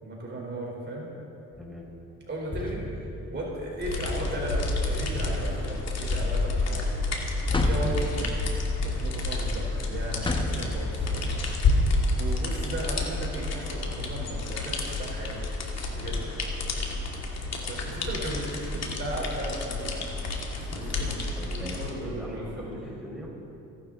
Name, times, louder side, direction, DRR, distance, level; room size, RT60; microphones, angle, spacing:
voice 1, 0.0-1.1 2.3-2.8 3.3-6.9 7.5-8.5 8.8-11.3 12.1-15.4 15.9-16.2 17.7-20.2 20.5-21.2 21.6-22.7, right 1 dB, 35° right, -3 dB, 3.9 m, -36 dB
sound 1, 1.5-1.8 2.5-3.9 5.1-6.5 7.5-9.0 10.2-11.1, left 1 dB, 15° left, 1.4 m, -33 dB
voice 2, 1.6-1.9 16.0-16.4 20.7-23.3, equal, ahead, -4 dB, 4.7 m, -41 dB
sound 2, 3.8-21.9, left 2 dB, 60° left, 2.6 m, -29 dB
28.0 x 11.5 x 3.9 m, 2.8 s
cardioid pair, 90°, 30 cm